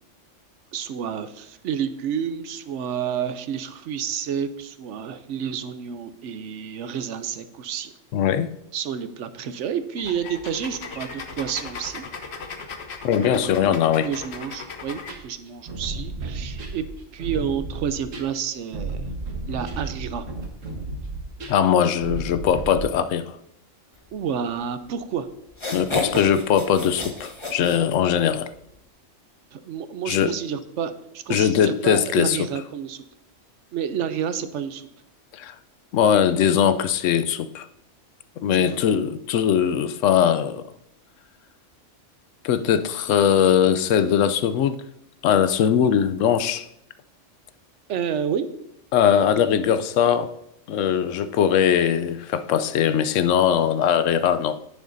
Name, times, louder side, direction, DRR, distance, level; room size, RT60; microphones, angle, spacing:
voice 1, 0.7-7.9 8.7-12.0 13.2-16.8 17.1-19.0 19.5-20.2 24.1-25.3 29.5-33.0 33.7-34.8 38.5-38.7 47.9-48.5, right 8 dB, 75° right, 0.9 m, -30 dB
voice 2, 8.1-8.5 13.0-14.1 21.5-23.4 25.7-28.5 30.1-30.3 31.3-32.5 35.3-35.5 35.9-37.7 38.4-40.6 42.4-44.8 45.2-46.7 48.9-50.3 50.7-54.6, left 8 dB, 80° left, 0.9 m, -20 dB
sound 1, 10.0-15.2, left 5 dB, 60° left, 1.1 m, -37 dB
sound 2, 15.1-22.9, right 3 dB, 90° right, 1.7 m, -33 dB
sound 3, 24.9-25.0 25.5-28.4, left 2 dB, 25° left, 1.1 m, -31 dB
10.5 x 9.2 x 2.6 m
omnidirectional pair, 1.3 m